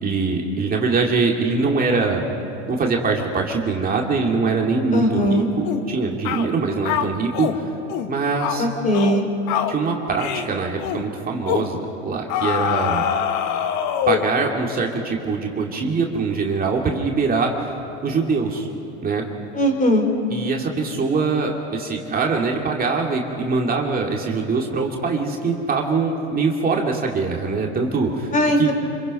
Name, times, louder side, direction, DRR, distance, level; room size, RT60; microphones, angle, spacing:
voice 1, 0.0-2.2 2.7-7.5 8.1-8.7 9.7-13.0 14.1-17.7 18.0-18.7 19.0-19.2 20.3-28.3 28.6-28.7, right 4 dB, 25° right, 0 dB, 2.4 m, -23 dB
voice 2, 4.9-5.5 8.6-9.3 19.5-20.1 28.3-28.7, equal, 20° left, 5 dB, 3.6 m, -19 dB
sound 1, 5.6-5.9 6.2-6.5 6.8-7.6 7.9-8.1 8.4-8.6 8.9-9.2 9.5-9.8 10.2-10.5 10.8-11.0 11.5-11.7 12.3-14.3, left 9 dB, 50° left, 1.7 m, -24 dB
26.5 x 25.5 x 5.4 m, 3.0 s
hypercardioid pair, 105°, 36 cm